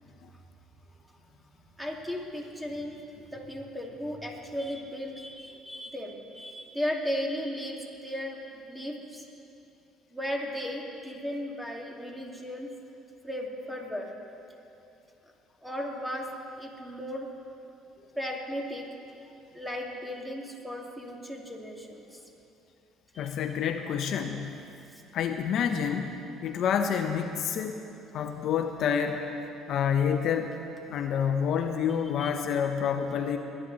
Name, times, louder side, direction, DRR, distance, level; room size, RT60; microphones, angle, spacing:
voice 1, 1.8-3.0 3.3-9.2 10.1-12.7 13.2-14.1 15.6-17.3 18.2-18.9 19.5-22.2 23.1-23.3 32.2-32.3 32.9-33.0, equal, 5° right, 0 dB, 2.3 m, -36 dB
voice 2, 23.2-24.5 25.1-26.1 26.4-27.8 28.1-29.3 29.7-30.5 30.9-33.4, left 7 dB, 65° left, 6 dB, 0.8 m, -28 dB
21.0 x 10.0 x 4.0 m, 2.7 s
supercardioid pair, 80°, 0 cm